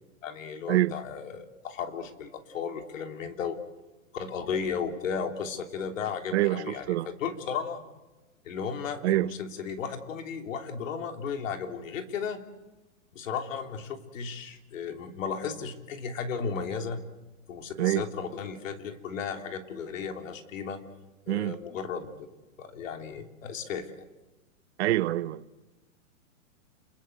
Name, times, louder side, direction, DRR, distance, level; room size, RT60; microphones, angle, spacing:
voice 1, 0.2-3.6 4.1-6.8 7.2-7.8 8.4-12.4 13.1-17.0 17.5-20.8 21.3-22.1 22.6-24.0, left 6 dB, 65° left, 3.4 m, -35 dB
voice 2, 6.3-7.1 9.0-9.3 17.8-18.0 21.3-21.6 24.8-25.4, right 16 dB, 55° right, 1.0 m, -26 dB
29.0 x 22.5 x 8.3 m
hypercardioid pair, 145°, 41 cm